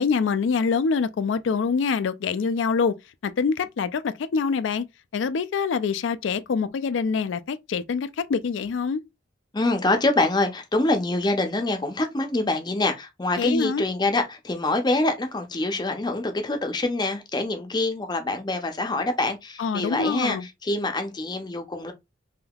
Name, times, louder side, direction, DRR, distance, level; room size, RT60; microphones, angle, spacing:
voice 1, 0.0-2.9 3.2-4.8 5.1-9.0 13.4-13.8 19.6-20.4, left 5 dB, 80° left, 0.4 m, -25 dB
voice 2, 9.5-21.9, left 2 dB, 20° left, 0.5 m, -25 dB
3.5 x 2.7 x 2.3 m
head